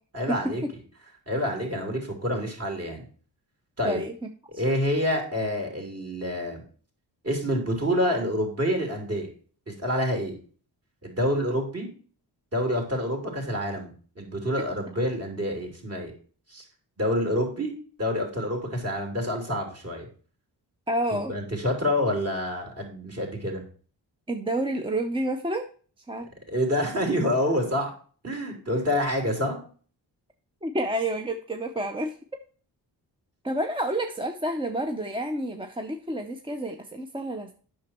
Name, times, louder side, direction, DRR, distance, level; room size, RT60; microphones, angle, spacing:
voice 1, 0.1-0.6 1.3-3.0 3.8-4.0 4.5-6.6 7.2-9.3 9.7-10.4 11.0-11.9 12.5-16.1 16.5-16.6 17.0-17.7 18.0-20.1 21.1-23.6 26.5-27.9 28.2-29.6, equal, 35° right, 1 dB, 3.1 m, -27 dB
voice 2, 3.8-4.1 4.5-4.6 20.9-21.3 24.3-25.7 26.1-26.3 28.3-28.4 30.6-32.1 33.4-37.5, right 1 dB, 15° right, 4 dB, 0.6 m, -29 dB
8.4 x 6.1 x 4.4 m, 0.41 s
cardioid pair, 100°, 40 cm